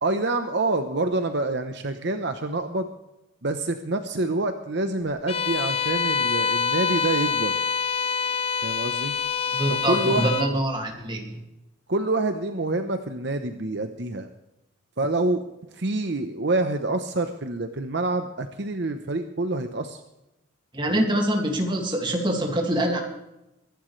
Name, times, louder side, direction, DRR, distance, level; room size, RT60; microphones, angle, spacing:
voice 1, 0.0-2.9 3.4-7.5 8.6-9.2 9.9-10.3 11.9-14.3 15.0-15.4 15.7-20.0 20.9-21.0, right 2 dB, 55° right, 7 dB, 1.0 m, -27 dB
Bowed string instrument, 5.3-10.6, left 6 dB, 30° left, 0.7 m, -26 dB
voice 2, 9.5-11.4 20.7-23.1, right 1 dB, 25° right, 2 dB, 2.3 m, -25 dB
23.5 x 11.5 x 3.3 m, 0.91 s
head